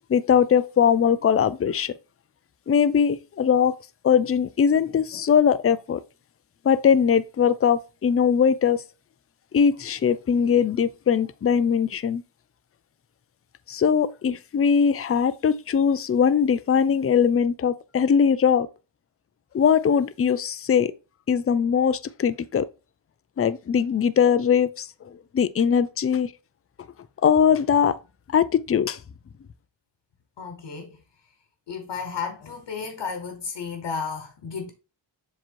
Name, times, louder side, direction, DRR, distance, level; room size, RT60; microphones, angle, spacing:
voice 1, 0.1-1.9 2.7-3.7 4.0-6.0 6.6-8.8 9.5-12.2 13.7-18.7 19.5-20.9 21.3-22.7 23.4-24.9 25.3-26.3 27.2-27.9 28.3-29.0, left 7 dB, 30° left, 0.5 m, -21 dB
voice 2, 30.4-31.0 31.7-34.7, left 5 dB, 70° left, 1.3 m, -33 dB
7.4 x 3.0 x 4.5 m
cardioid pair, 80°, 45 cm